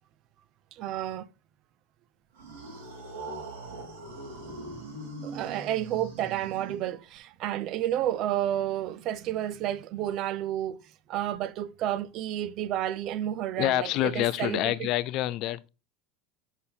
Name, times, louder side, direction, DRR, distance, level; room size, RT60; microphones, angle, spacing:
voice 1, 0.7-1.3 5.2-10.8 11.1-14.9, right 12 dB, 40° right, 0.5 m, -31 dB
sound 1, 2.4-7.2, right 2 dB, 85° right, 3.4 m, -41 dB
voice 2, 13.5-15.7, left 14 dB, 45° left, 0.3 m, -27 dB
6.9 x 5.7 x 3.4 m
supercardioid pair, 165°, 0 cm